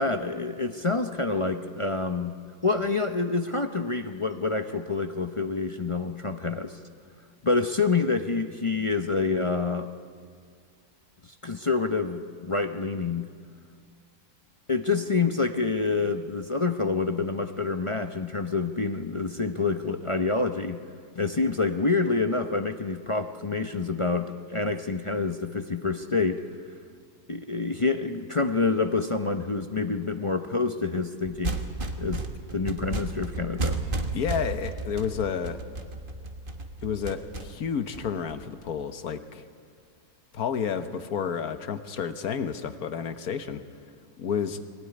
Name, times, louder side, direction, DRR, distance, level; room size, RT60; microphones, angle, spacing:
voice 1, 0.0-2.4 2.6-6.8 7.4-9.9 11.4-13.3 14.7-20.8 21.2-26.4 27.3-31.6 32.0-32.2 32.5-33.8, left 4 dB, 35° left, 6 dB, 0.5 m, -27 dB
sound 1, 31.2-38.7, right 2 dB, 35° right, 1.5 m, -33 dB
voice 2, 34.1-35.6 36.8-39.4 40.3-43.6 44.2-44.6, left 7 dB, 70° left, 9 dB, 1.6 m, -30 dB
21.5 x 18.0 x 9.8 m, 2.1 s
omnidirectional pair, 1.6 m